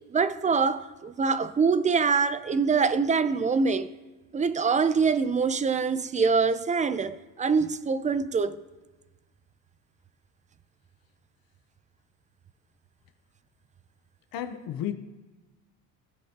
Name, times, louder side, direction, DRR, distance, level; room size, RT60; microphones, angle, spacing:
voice 1, 0.1-3.9 4.3-8.6, right 5 dB, 20° right, 0.5 m, -24 dB
voice 2, 14.3-14.9, left 10 dB, 60° left, 0.9 m, -32 dB
16.0 x 6.6 x 2.9 m
supercardioid pair, 95°, 39 cm